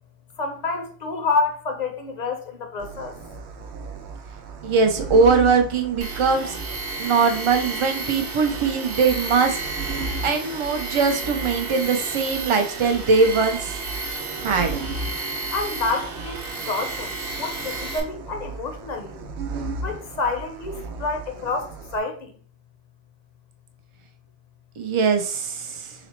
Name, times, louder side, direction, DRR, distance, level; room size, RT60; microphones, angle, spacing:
voice 1, 0.4-3.1 15.5-19.1 19.8-22.3, left 3 dB, 50° left, 0.7 m, -28 dB
sound 1, 2.8-22.0, right 4 dB, 90° right, 0.9 m, -36 dB
voice 2, 4.6-6.6 7.0-9.6 10.2-13.8 14.4-14.8 24.8-25.9, right 4 dB, 40° right, 0.4 m, -21 dB
Tools, 6.0-18.0, right 3 dB, 65° right, 1.0 m, -32 dB
4.0 x 2.0 x 4.3 m
omnidirectional pair, 1.1 m